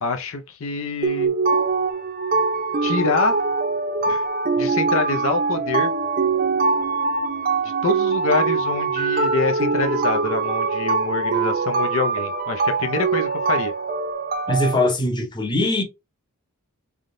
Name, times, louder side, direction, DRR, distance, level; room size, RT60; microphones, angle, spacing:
voice 1, 0.0-1.3 2.8-3.4 4.1-4.2 4.6-5.9 7.8-13.7, left 4 dB, 60° left, 0.6 m, -26 dB
sound 1, 1.0-14.7, right 4 dB, 40° right, 0.7 m, -22 dB
voice 2, 14.5-15.8, left 1 dB, 20° left, 0.8 m, -21 dB
3.7 x 3.5 x 2.6 m
head